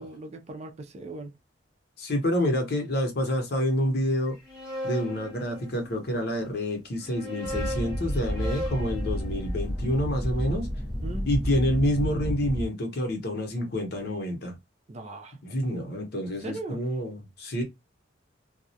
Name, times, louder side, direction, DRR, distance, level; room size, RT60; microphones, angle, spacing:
voice 1, 0.0-1.4 11.0-11.3 14.9-15.4 16.4-16.8, right 2 dB, 35° right, 0.4 m, -39 dB
voice 2, 2.0-4.4 4.8-10.7 11.3-14.6 15.4-17.6, equal, 55° left, 0.8 m, -28 dB
sound 1, 4.3-6.2 6.9-11.1, equal, ahead, 1.0 m, -39 dB
sound 2, 7.4-12.7, equal, 20° left, 0.5 m, -31 dB
2.3 x 2.0 x 2.6 m
head